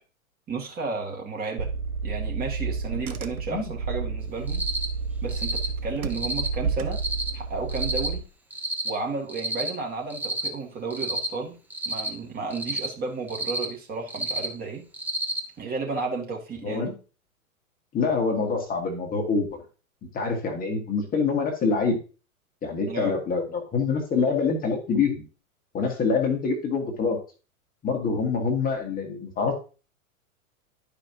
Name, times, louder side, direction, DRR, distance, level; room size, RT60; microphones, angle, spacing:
voice 1, 0.5-1.7 2.0-4.6 5.2-7.0 7.3-8.2 8.8-11.5 11.9-14.8 15.6-17.0 22.9-23.1, right 4 dB, 20° right, 0 dB, 2.2 m, -32 dB
Car / Engine, 1.6-8.2, right 4 dB, 80° right, 0.9 m, -30 dB
Cricket, 4.5-4.9 5.3-5.7 6.1-6.5 6.9-7.3 7.7-8.1 8.5-8.9 9.3-9.7 10.1-10.5 10.9-11.3 11.7-12.1 12.5-12.9 13.3-13.6 14.1-14.5 14.9-15.4, right 1 dB, 5° right, 0.9 m, -29 dB
voice 2, 17.9-19.5 20.1-22.0 22.6-25.2 25.7-27.2 27.8-29.5, left 4 dB, 20° left, 2 dB, 1.5 m, -25 dB
11.5 x 5.0 x 2.9 m, 0.35 s
figure-of-eight pair, 105°, 42 cm